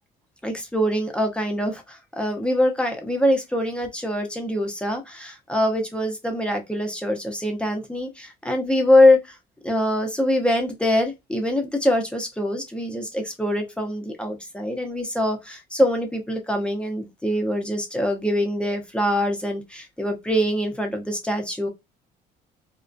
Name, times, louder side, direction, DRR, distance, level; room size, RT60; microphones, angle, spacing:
voice 1, 0.4-9.4 9.6-21.7, left 1 dB, 5° left, 0.6 m, -23 dB
2.3 x 2.1 x 2.5 m
cardioid pair, 110°, 17 cm